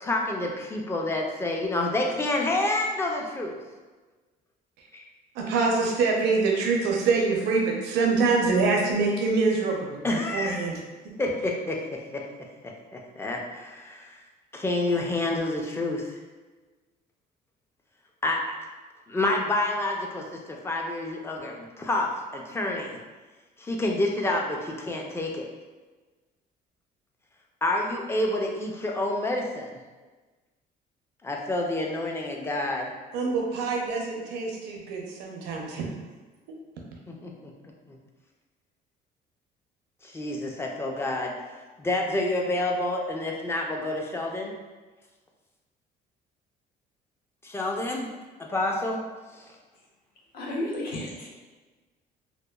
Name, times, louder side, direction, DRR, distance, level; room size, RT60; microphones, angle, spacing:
voice 1, 0.0-3.6 4.9-5.0 10.0-10.6 11.2-12.2 12.6-14.2 14.5-16.2 18.2-18.4 19.1-23.0 23.6-25.5 27.6-29.8 31.2-32.9 37.1-37.5 37.9-38.0 40.0-41.3 41.8-44.5 47.4-48.1 48.4-49.0 49.3-49.5, left 2 dB, 15° left, 0 dB, 0.4 m, -28 dB
voice 2, 5.3-10.8 33.1-35.9, right 4 dB, 85° right, 0 dB, 0.6 m, -25 dB
voice 3, 50.3-51.3, left 1 dB, 60° left, -3 dB, 0.7 m, -32 dB
2.9 x 2.1 x 2.2 m, 1.3 s
cardioid pair, 110°, 17 cm